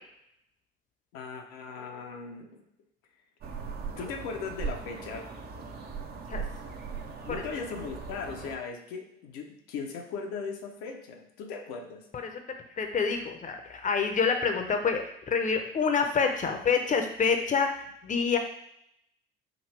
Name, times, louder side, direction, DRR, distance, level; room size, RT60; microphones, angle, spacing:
voice 1, 1.1-2.6 4.0-5.3 7.2-12.1, left 5 dB, 60° left, 3 dB, 0.8 m, -38 dB
sound 1, 3.4-8.6, right 5 dB, 35° right, 0.7 m, -39 dB
voice 2, 12.8-18.4, left 5 dB, 25° left, 5 dB, 0.7 m, -27 dB
5.0 x 2.6 x 3.3 m, 0.74 s
figure-of-eight pair, 60°, 30 cm